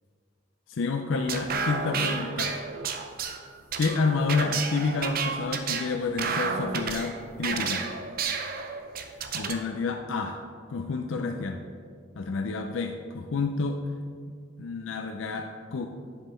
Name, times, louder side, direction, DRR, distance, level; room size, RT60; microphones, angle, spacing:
voice 1, 0.7-2.6 3.8-7.9 9.3-10.4 10.7-11.6 12.2-13.8 14.6-15.9, left 4 dB, 70° left, 4 dB, 0.5 m, -29 dB
sound 1, 1.1-9.6, right 5 dB, 45° right, 0.5 m, -31 dB
9.7 x 5.5 x 4.4 m, 2.1 s
head